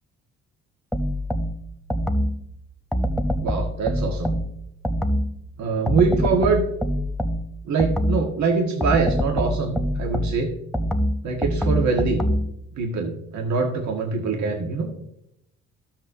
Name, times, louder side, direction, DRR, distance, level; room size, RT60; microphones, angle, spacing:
sound 1, 0.9-2.5 2.9-5.4 5.9-8.3 8.8-12.6, equal, ahead, 0.6 m, -25 dB
voice 1, 3.4-4.3 5.6-6.7 7.7-10.5 11.2-12.2 12.8-14.9, right 4 dB, 65° right, 1 dB, 1.6 m, -23 dB
12.5 x 7.4 x 2.7 m, 0.79 s
cardioid pair, 90°, 30 cm